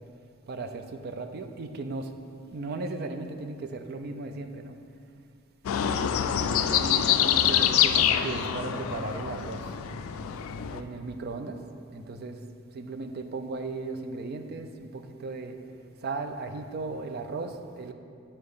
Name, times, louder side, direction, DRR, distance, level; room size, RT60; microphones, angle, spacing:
voice 1, 0.5-2.1 2.5-4.8 5.7-9.7 10.6-11.6 11.9-12.4 12.7-15.6 16.0-17.9, right 3 dB, 50° right, 7 dB, 0.4 m, -36 dB
sound 1, 5.7-10.8, left 9 dB, 80° left, 0.3 m, -25 dB
6.7 x 4.2 x 5.4 m, 2.4 s
head